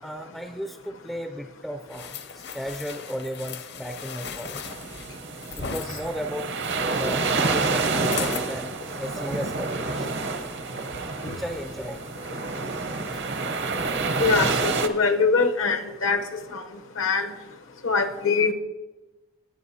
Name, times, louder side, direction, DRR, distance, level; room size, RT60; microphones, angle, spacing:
voice 1, 0.0-4.7 5.6-6.6 7.0-10.1 11.2-12.0 13.1-13.2 14.4-14.6 15.0-15.1, equal, ahead, 5 dB, 0.4 m, -35 dB
sound 1, 1.9-5.9 7.9-8.5 9.0-9.2, left 6 dB, 55° left, 0.7 m, -37 dB
sound 2, 4.6-14.9, right 3 dB, 55° right, 0.8 m, -28 dB
voice 2, 14.2-16.2 17.0-17.3 17.8-18.5, left 4 dB, 80° left, 6 dB, 0.9 m, -22 dB
19.0 x 7.7 x 2.8 m, 1.1 s
head